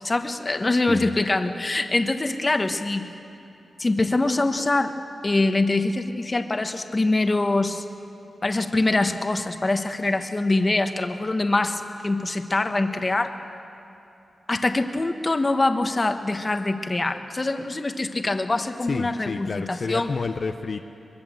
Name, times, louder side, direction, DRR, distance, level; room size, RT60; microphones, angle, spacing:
voice 1, 0.0-3.1 3.8-4.9 5.2-7.8 8.4-13.3 14.5-20.1, left 2 dB, 25° left, 6 dB, 1.3 m, -24 dB
voice 2, 18.9-20.9, left 4 dB, 45° left, 5 dB, 0.7 m, -29 dB
23.5 x 23.0 x 7.8 m, 2.9 s
wide cardioid pair, 150°, 0 cm